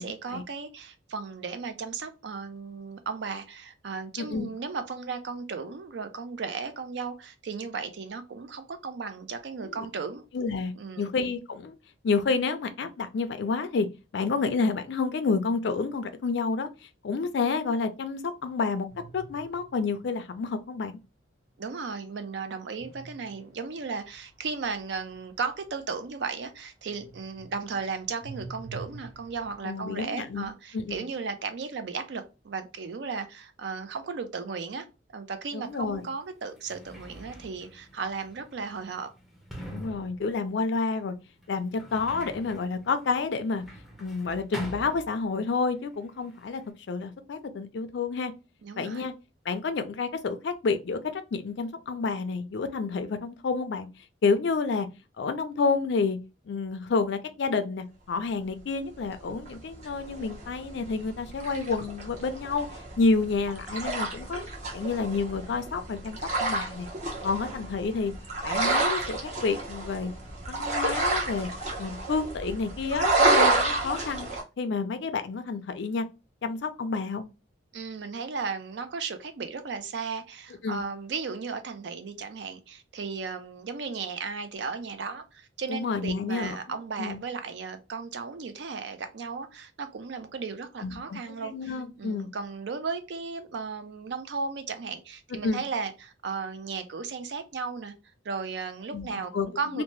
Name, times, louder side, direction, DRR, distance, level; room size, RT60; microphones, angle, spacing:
voice 1, 0.0-10.3 10.7-11.1 21.6-34.9 35.1-39.1 48.6-49.1 77.7-97.9 98.2-99.8, right 5 dB, 65° right, 0.4 m, -35 dB
voice 2, 4.2-4.5 9.6-9.9 10.3-11.7 12.0-13.9 14.1-16.7 17.0-18.9 19.1-21.0 29.6-31.0 35.5-36.1 39.7-41.1 41.5-43.6 44.0-46.6 46.9-48.3 48.8-49.1 49.5-53.9 54.2-54.9 55.2-56.2 56.5-62.7 63.0-64.4 64.7-66.9 67.2-68.1 68.4-70.1 70.5-71.5 71.8-74.3 74.6-76.1 76.4-77.3 80.6-80.9 85.7-86.6 87.0-87.2 90.8-92.3 95.4-95.6 98.9-99.5 99.7-99.8, left 4 dB, 65° left, 0.4 m, -29 dB
sound 1, 18.9-20.6 22.8-26.6 26.9-29.8, right 4 dB, 20° right, 1.4 m, -47 dB
Sliding door, 35.7-35.8 36.5-45.6 45.9-46.7, equal, ahead, 0.5 m, -45 dB
sound 2, 59.0-74.4, right 2 dB, 40° right, 0.8 m, -30 dB
2.7 x 2.1 x 3.0 m
head